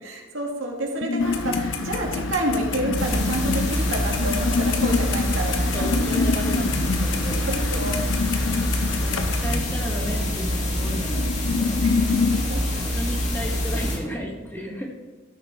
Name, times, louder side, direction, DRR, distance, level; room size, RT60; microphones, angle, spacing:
voice 1, 0.0-6.4 7.5-8.0 11.8-12.9, right 1 dB, 90° right, -1 dB, 2.3 m, -29 dB
sound 1, 1.0-12.5, left 4 dB, 60° left, 0.5 m, -27 dB
Clock, 1.2-9.6, left 4 dB, 80° left, 1.0 m, -32 dB
sound 2, 3.0-14.0, left 1 dB, 40° left, 2.2 m, -26 dB
voice 2, 5.7-7.5 9.0-12.1 13.0-14.9, equal, 10° left, -1 dB, 2.0 m, -34 dB
13.5 x 6.7 x 4.5 m, 1.3 s
head